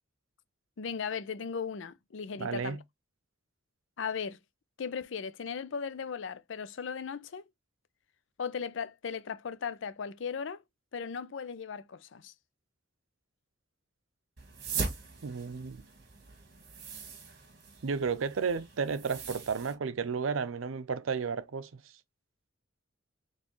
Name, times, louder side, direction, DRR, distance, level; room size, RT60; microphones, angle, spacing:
voice 1, 0.8-2.8 4.0-4.4 4.8-7.4 8.4-10.6 10.9-12.3, left 6 dB, 70° left, 0.5 m, -37 dB
voice 2, 2.4-2.8 15.2-15.8 17.8-21.8, right 5 dB, 90° right, 0.5 m, -32 dB
sound 1, 14.4-19.7, right 4 dB, 55° right, 1.4 m, -40 dB
4.3 x 3.2 x 3.0 m
head